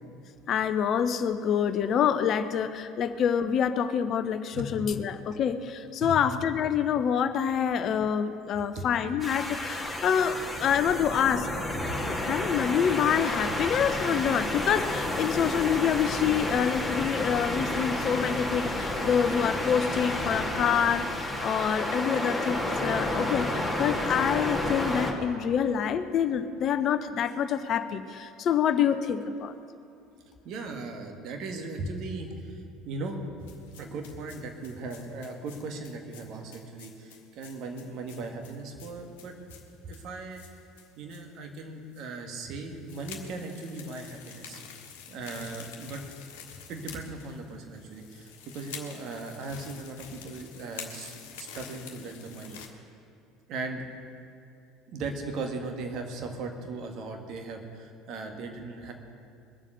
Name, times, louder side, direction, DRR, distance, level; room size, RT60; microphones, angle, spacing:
voice 1, 0.5-11.5 12.0-21.1 21.4-29.5, left 8 dB, 45° left, 10 dB, 0.7 m, -27 dB
voice 2, 4.5-5.0 6.0-6.2 8.6-8.9 11.8-12.1 13.5-13.7 19.0-19.1 20.1-20.3 30.4-33.2 33.8-39.6 39.8-40.4 41.0-46.0 46.7-52.8 53.5-53.8 54.9-58.9, right 3 dB, 50° right, 4 dB, 1.8 m, -38 dB
sound 1, 9.2-25.1, left 1 dB, ahead, 2.0 m, -31 dB
sound 2, 33.5-41.3 41.6-41.7 41.9-42.1 42.7-52.7, left 7 dB, 65° left, 1.4 m, -47 dB
22.0 x 7.3 x 6.7 m, 2.6 s
figure-of-eight pair, 65°, 0 cm